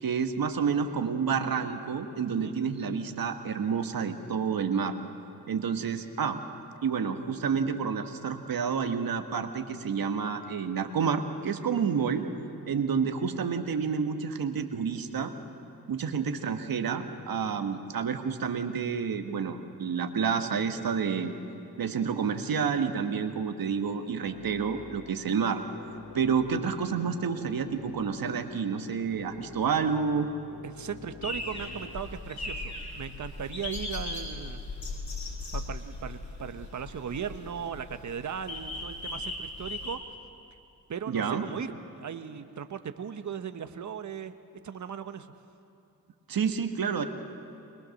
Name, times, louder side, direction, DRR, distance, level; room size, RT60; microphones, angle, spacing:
voice 1, 0.0-4.9 5.5-6.4 6.8-12.3 12.7-15.3 15.9-21.3 21.8-25.6 26.1-30.3 41.1-41.5 46.3-47.0, right 6 dB, 65° right, 6 dB, 1.5 m, -29 dB
sound 1, 24.2-32.0, left 6 dB, 85° left, 1.2 m, -47 dB
voice 2, 30.6-34.6 35.5-40.0 40.9-44.3 44.6-45.3, right 7 dB, 50° right, 9 dB, 1.1 m, -38 dB
sound 2, 31.2-40.0, left 2 dB, 50° left, 4.7 m, -38 dB
21.5 x 21.0 x 6.5 m, 2.8 s
cardioid pair, 60°, 38 cm